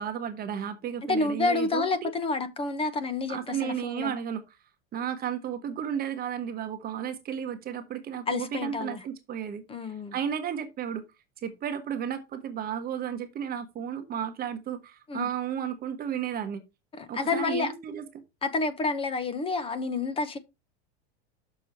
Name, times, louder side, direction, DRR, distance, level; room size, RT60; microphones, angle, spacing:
voice 1, 0.0-2.1 3.3-4.4 4.9-9.6 10.1-11.0 11.4-16.6 17.1-18.1, right 8 dB, 30° right, 1.1 m, -33 dB
voice 2, 1.0-4.1 8.3-9.0 9.7-10.2 15.1-15.3 16.9-17.7 18.4-20.4, left 3 dB, 20° left, 1.0 m, -29 dB
6.8 x 6.3 x 4.3 m
supercardioid pair, 140°, 31 cm